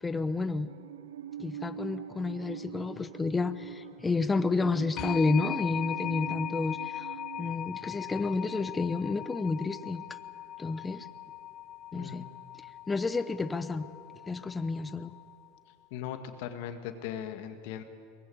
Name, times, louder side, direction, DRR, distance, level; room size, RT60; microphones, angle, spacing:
voice 1, 0.0-0.7 1.4-10.2 10.6-11.1 11.9-12.3 12.9-13.9 14.3-15.1, left 3 dB, 15° left, 12 dB, 0.9 m, -30 dB
Musical instrument, 0.7-7.5, right 10 dB, 90° right, 0.5 m, -43 dB
sound 1, 5.0-15.6, left 12 dB, 45° left, 0.5 m, -40 dB
voice 2, 11.9-12.3 15.9-17.8, left 9 dB, 65° left, 7 dB, 2.0 m, -39 dB
22.5 x 19.5 x 8.7 m, 2.4 s
supercardioid pair, 115°, 0 cm